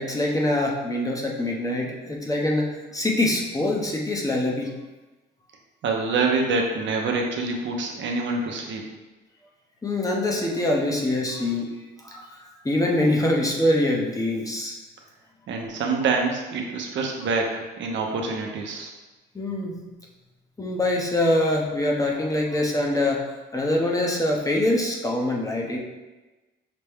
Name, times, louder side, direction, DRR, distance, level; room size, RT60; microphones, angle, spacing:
voice 1, 0.0-4.7 9.8-11.7 12.0-14.8 19.3-19.8 20.6-23.2 23.5-25.8, left 1 dB, 15° left, -1 dB, 0.8 m, -24 dB
voice 2, 5.8-8.8 15.5-18.9, right 3 dB, 70° right, 1 dB, 0.7 m, -26 dB
5.9 x 2.2 x 3.5 m, 1.1 s
cardioid pair, 90°, 20 cm